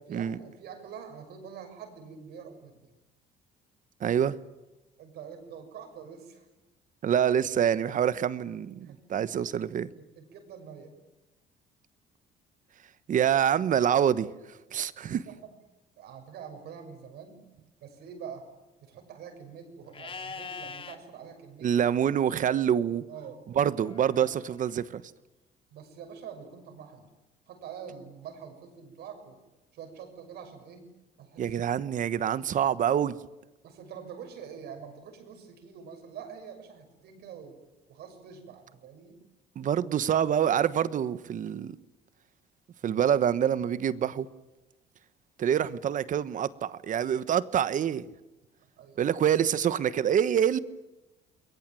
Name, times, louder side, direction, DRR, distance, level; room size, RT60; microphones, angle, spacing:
voice 1, 0.0-2.9 5.0-6.5 8.8-9.1 10.0-10.9 15.1-15.5 16.0-17.4 17.8-18.5 18.8-21.8 23.1-23.4 25.7-27.1 27.5-29.4 29.7-30.9 31.2-31.6 33.6-37.6 37.9-39.2 48.8-49.0, right 7 dB, 75° right, 6.6 m, -45 dB
voice 2, 4.0-4.4 7.0-9.9 13.1-14.3 14.7-15.2 21.6-23.0 23.5-25.0 31.4-33.1 39.6-41.8 42.8-44.3 45.4-48.0 49.0-50.6, right 9 dB, 50° right, 1.2 m, -26 dB
Livestock farm animals working animals, 19.9-21.0 23.8-24.8, left 5 dB, 30° left, 2.1 m, -42 dB
29.5 x 22.0 x 9.2 m
cardioid pair, 110°, 17 cm